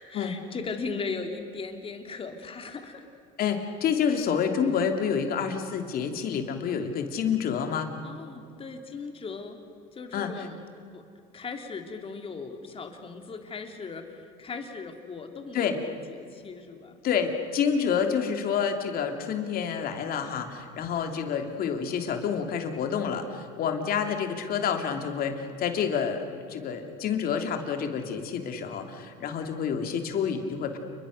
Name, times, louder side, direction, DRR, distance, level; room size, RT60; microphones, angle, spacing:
voice 1, 0.0-3.0 8.0-9.6 9.9-10.6 10.9-11.0 11.3-17.0, left 4 dB, 30° left, 5 dB, 3.1 m, -38 dB
voice 2, 3.4-7.9 10.1-10.5 15.5-15.8 17.0-30.8, left 7 dB, 50° left, 5 dB, 3.0 m, -28 dB
29.0 x 22.0 x 6.6 m, 2.5 s
supercardioid pair, 110°, 19 cm